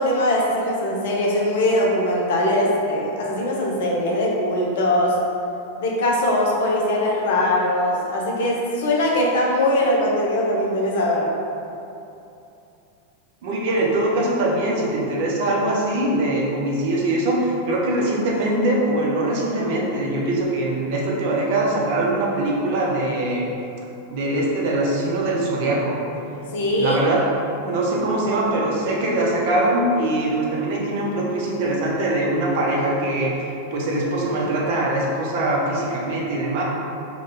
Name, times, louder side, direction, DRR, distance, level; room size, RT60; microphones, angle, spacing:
voice 1, 0.0-5.2 5.8-11.3 26.5-27.0, left 1 dB, 55° left, -3 dB, 0.6 m, -21 dB
voice 2, 13.4-23.5 24.1-26.0 26.7-27.3 27.6-33.3 33.7-36.6, right 1 dB, 50° right, -3 dB, 0.6 m, -22 dB
2.9 x 2.5 x 3.9 m, 2.8 s
figure-of-eight pair, 90°, 0 cm